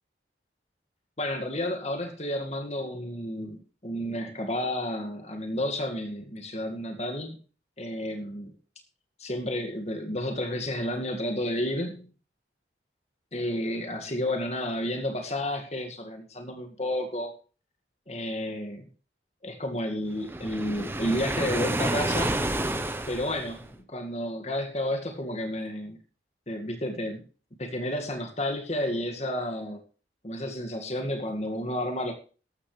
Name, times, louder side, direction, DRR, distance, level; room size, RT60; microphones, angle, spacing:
voice 1, 1.2-7.4 7.8-8.5 9.2-12.1 13.3-17.3 18.1-18.9 19.4-22.4 23.1-26.0 26.5-27.2 27.6-29.8 30.2-32.1, left 1 dB, 35° left, 4 dB, 2.1 m, -31 dB
Waves surf, 20.2-23.7, right 1 dB, 10° right, 0.9 m, -29 dB
14.0 x 12.5 x 3.4 m, 0.38 s
head